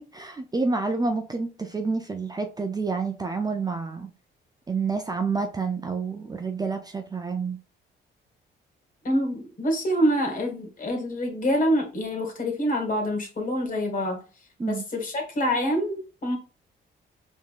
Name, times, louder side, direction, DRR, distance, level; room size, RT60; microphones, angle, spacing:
voice 1, 0.0-4.1 4.7-7.6 14.6-14.8, right 4 dB, 20° right, 0.5 m, -28 dB
voice 2, 9.0-14.2 14.7-16.4, equal, 45° left, 1.9 m, -26 dB
4.5 x 3.6 x 2.5 m
cardioid pair, 90°, 20 cm